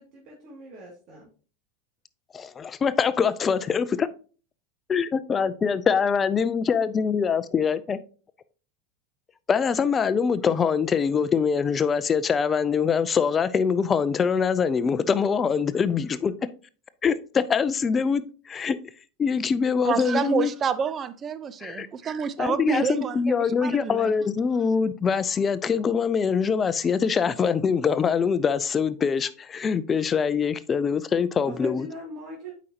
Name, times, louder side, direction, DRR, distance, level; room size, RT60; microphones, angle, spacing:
voice 1, 0.0-1.3 31.5-32.5, equal, 45° right, 2.4 m, -40 dB
voice 2, 2.3-4.1 4.9-8.0 9.5-16.3 17.0-18.8 19.2-20.5 21.6-21.9 22.4-31.9, left 6 dB, 30° left, 0.5 m, -24 dB
voice 3, 19.8-24.1, right 7 dB, 30° right, 0.6 m, -28 dB
8.3 x 5.1 x 2.9 m
hypercardioid pair, 90°, 0 cm